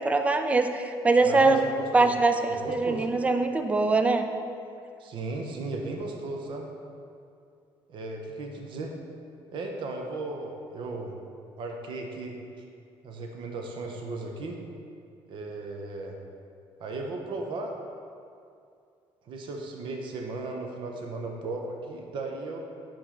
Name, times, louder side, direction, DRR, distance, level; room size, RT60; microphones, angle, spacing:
voice 1, 0.0-1.7 1.9-4.3, right 3 dB, 15° right, 7 dB, 0.4 m, -23 dB
voice 2, 1.2-2.1 2.5-3.1 5.0-6.7 7.9-8.9 9.5-11.1 11.6-12.4 13.0-14.6 15.3-16.2 16.8-17.7 19.3-22.6, right 2 dB, 55° right, 2 dB, 0.8 m, -36 dB
5.1 x 4.5 x 5.6 m, 2.4 s
cardioid pair, 130°, 10 cm